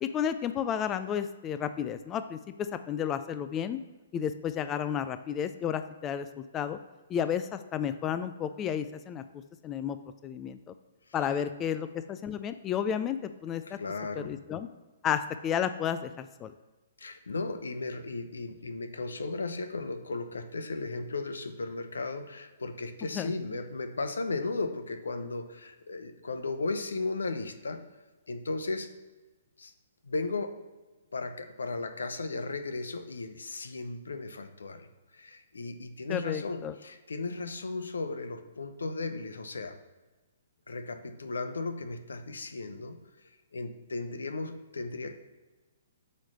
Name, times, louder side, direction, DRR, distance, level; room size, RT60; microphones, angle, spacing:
voice 1, 0.0-3.8 4.1-6.8 7.1-9.2 9.6-10.0 10.2-10.7 11.1-13.6 14.2-14.7 15.0-16.5 23.1-23.3 36.1-36.7, left 8 dB, 25° left, 11 dB, 0.4 m, -32 dB
voice 2, 13.6-14.3 17.0-27.8 28.3-28.9 29.6-29.7 30.0-30.6 31.1-39.8 40.7-45.2, left 3 dB, 85° left, 9 dB, 0.8 m, -36 dB
8.1 x 3.3 x 6.4 m, 1.2 s
hypercardioid pair, 130°, 0 cm